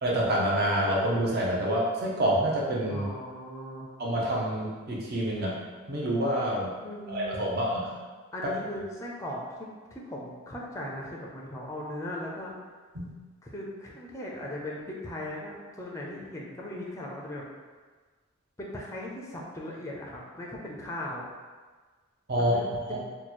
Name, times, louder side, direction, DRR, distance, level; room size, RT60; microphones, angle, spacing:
voice 1, 0.0-3.1 4.0-5.6 5.9-6.7 7.1-7.9 12.9-13.1 22.3-22.5 22.9-23.0, right 1 dB, 50° right, -4 dB, 0.7 m, -27 dB
voice 2, 2.9-3.9 6.8-7.6 8.3-12.5 13.4-17.4 18.6-21.3 22.4-23.0, left 1 dB, 15° left, -2 dB, 0.4 m, -38 dB
3.0 x 2.2 x 4.2 m, 1.4 s
head